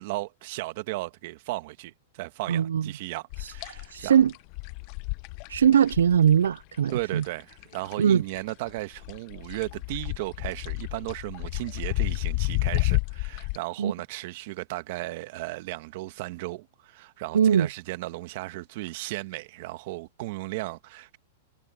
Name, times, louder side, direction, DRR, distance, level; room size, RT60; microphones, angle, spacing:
voice 1, 0.0-4.1 6.9-21.2, right 20 dB, 55° right, 1.5 m, -35 dB
voice 2, 2.5-2.9 3.4-3.5 3.9-4.3 5.5-7.2 8.0-8.2 13.8-13.9 17.3-17.7, right 8 dB, 90° right, 0.3 m, -21 dB
sound 1, 3.3-8.1 8.4-13.6, left 25 dB, 45° left, 0.8 m, -31 dB
hypercardioid pair, 135°, 0 cm